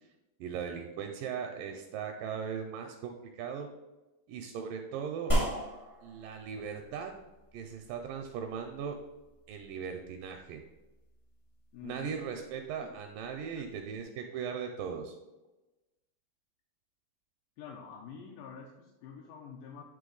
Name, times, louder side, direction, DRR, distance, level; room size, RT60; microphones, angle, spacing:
voice 1, 0.4-3.7 4.3-5.4 6.0-7.2 7.5-9.0 9.5-10.6 11.8-15.2, right 7 dB, 80° right, 4 dB, 2.0 m, -38 dB
sound 1, 5.3-14.0, right 1 dB, 55° left, 0.3 m, -39 dB
voice 2, 11.7-12.2 12.8-13.0 13.4-13.7 17.6-19.8, left 6 dB, 80° left, -1 dB, 2.2 m, -47 dB
9.1 x 3.2 x 3.8 m, 1.1 s
omnidirectional pair, 4.2 m